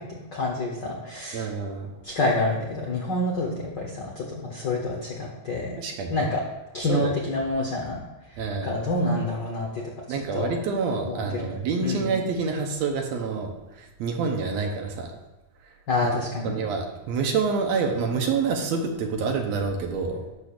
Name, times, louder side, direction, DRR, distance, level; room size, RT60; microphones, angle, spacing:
voice 1, 0.0-1.4 2.0-5.7 6.1-6.4 6.7-8.0 8.6-10.0 10.3-10.5 11.0-11.6 11.8-12.0 15.9-16.5, left 2 dB, 70° left, -2 dB, 1.0 m, -28 dB
voice 2, 1.3-1.9 5.8-6.3 6.9-7.1 8.4-8.8 10.1-15.1 16.0-20.2, right 4 dB, 75° right, 3 dB, 1.9 m, -27 dB
12.0 x 6.7 x 2.4 m, 1.1 s
omnidirectional pair, 3.4 m